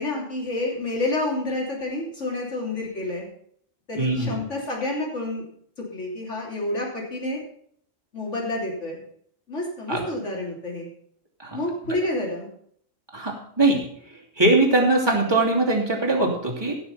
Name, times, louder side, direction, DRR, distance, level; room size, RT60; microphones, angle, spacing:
voice 1, 0.0-3.3 3.9-5.5 5.9-7.4 8.1-9.0 9.5-10.9 11.5-12.5, left 2 dB, 80° left, -2 dB, 3.7 m, -29 dB
voice 2, 4.0-4.4 9.9-10.0 11.4-11.6 13.1-13.9 14.4-16.8, right 2 dB, 20° right, -3 dB, 2.9 m, -21 dB
15.5 x 6.8 x 5.7 m, 0.63 s
omnidirectional pair, 1.2 m